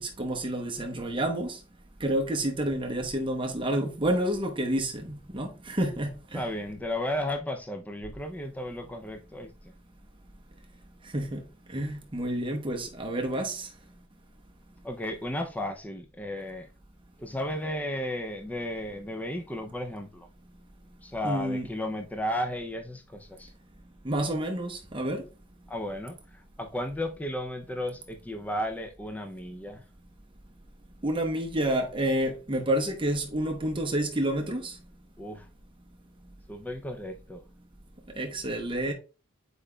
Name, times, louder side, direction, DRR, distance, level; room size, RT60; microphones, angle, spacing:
voice 1, 0.0-1.6 2.0-6.4 11.0-13.7 21.2-21.6 24.0-25.2 31.0-34.8 38.2-38.9, right 1 dB, 25° right, 0.8 m, -29 dB
voice 2, 6.3-9.7 14.8-16.7 17.2-20.3 21.0-23.5 25.7-29.8 35.2-35.5 36.5-37.4, left 1 dB, 5° left, 0.4 m, -34 dB
8.6 x 4.9 x 2.2 m
head